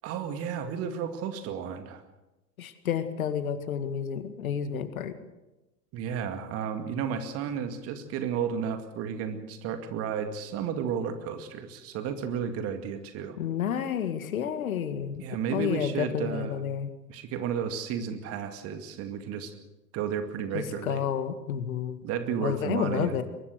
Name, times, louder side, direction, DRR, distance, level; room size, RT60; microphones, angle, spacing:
voice 1, 0.0-2.0 5.9-13.4 15.2-16.6 17.1-19.5 19.9-21.0 22.0-23.2, right 7 dB, 30° right, 8 dB, 2.2 m, -32 dB
voice 2, 2.6-5.1 13.4-15.2 15.5-16.9 20.5-22.0 22.4-23.2, left 8 dB, 55° left, 10 dB, 2.1 m, -30 dB
23.0 x 20.0 x 6.5 m, 1.0 s
figure-of-eight pair, 110°, 48 cm